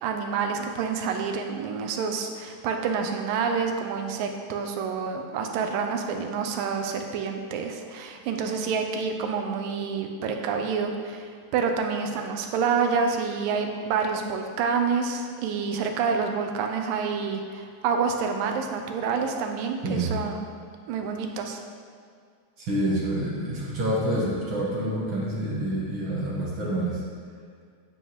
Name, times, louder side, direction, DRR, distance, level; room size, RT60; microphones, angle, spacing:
voice 1, 0.0-20.4 20.9-21.6, right 5 dB, 75° right, 4 dB, 2.2 m, -28 dB
voice 2, 19.8-20.2 22.6-27.0, right 1 dB, 55° right, -6 dB, 1.4 m, -27 dB
9.0 x 8.9 x 3.0 m, 2.1 s
omnidirectional pair, 4.2 m